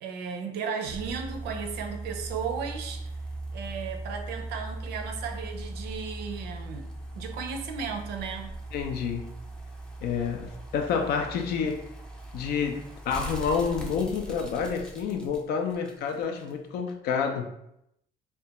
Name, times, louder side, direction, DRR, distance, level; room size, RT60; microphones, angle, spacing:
voice 1, 0.0-3.1 3.5-6.9 7.1-8.5, right 6 dB, 75° right, 4 dB, 0.5 m, -35 dB
sound 1, 0.8-16.5 16.9-17.0, right 2 dB, 5° left, 0.4 m, -39 dB
voice 2, 8.7-9.3 10.0-11.8 12.3-17.5, left 6 dB, 70° left, 5 dB, 0.4 m, -29 dB
2.3 x 2.2 x 2.8 m, 0.79 s
cardioid pair, 110°, 17 cm